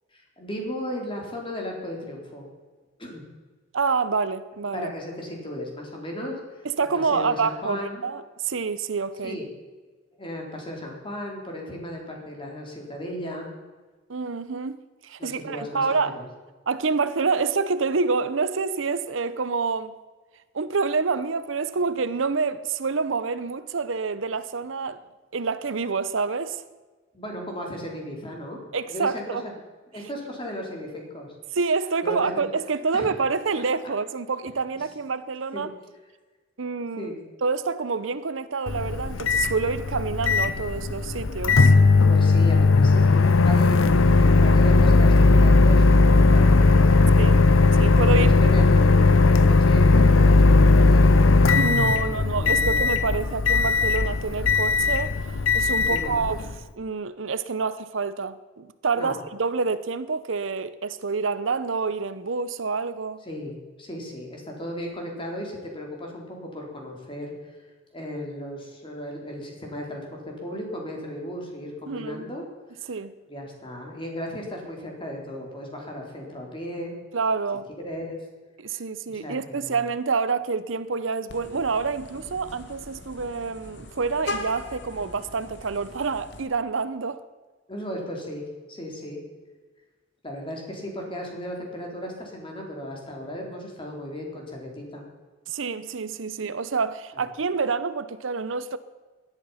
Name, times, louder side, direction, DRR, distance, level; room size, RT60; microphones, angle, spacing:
voice 1, 0.1-2.5 3.0-3.2 4.7-6.7 6.9-8.0 9.2-9.5 10.2-13.5 15.2-16.3 27.1-28.6 28.9-29.5 29.9-31.3 32.0-32.5 32.9-33.1 35.5-35.7 37.0-37.2 42.1-47.8 48.2-51.6 51.9-53.0 55.9-56.2 59.0-59.2 63.3-67.5 67.9-72.4 72.7-72.8 73.3-76.9 77.8-78.2 79.1-79.8 87.7-88.4 88.7-89.2 90.2-95.0, left 1 dB, 25° left, 3.9 m, -35 dB
voice 2, 3.7-4.9 6.8-9.4 14.1-14.8 15.0-16.1 16.7-19.9 20.5-25.0 25.3-26.6 28.7-29.4 31.6-35.7 36.6-37.1 37.4-41.7 47.2-47.4 47.8-48.4 51.6-55.1 55.5-56.4 56.8-63.2 71.9-72.3 72.9-73.1 77.1-77.7 78.6-87.2 95.5-98.8, right 4 dB, 75° right, 0.7 m, -27 dB
Microwave oven, 38.7-56.6, left 3 dB, 85° left, 0.8 m, -18 dB
Vehicle horn car horn honking, 81.3-86.4, left 2 dB, 60° left, 1.7 m, -39 dB
17.5 x 11.5 x 5.7 m
head